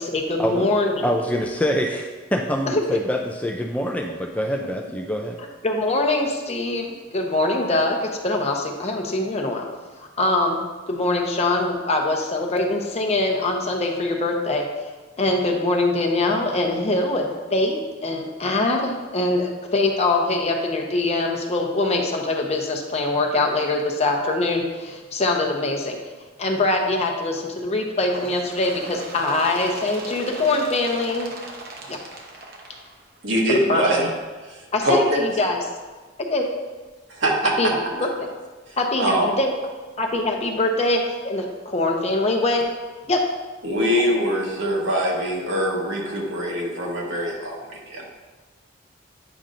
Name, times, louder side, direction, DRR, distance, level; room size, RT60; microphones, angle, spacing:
voice 1, 0.0-1.0 2.7-2.8 5.6-9.7 10.0-10.6 10.9-14.7 15.2-26.0 26.4-31.3 31.9-32.0 33.5-33.9 34.7-35.6 36.3-36.5 37.6-38.1 38.8-39.5 40.0-42.7 43.1-43.2, left 2 dB, 35° left, 2 dB, 0.7 m, -23 dB
voice 2, 1.0-5.4, equal, 5° left, 1 dB, 0.3 m, -25 dB
Bird, 28.1-33.5 34.4-34.5 34.9-35.0 35.8-35.9 36.8-36.9 37.8-37.9, right 2 dB, 50° right, 0.8 m, -38 dB
voice 3, 33.2-34.1 34.4-35.2 37.1-37.7 38.7-39.3 43.6-48.0, equal, 70° right, -2 dB, 1.3 m, -23 dB
8.7 x 5.2 x 2.5 m, 1.3 s
head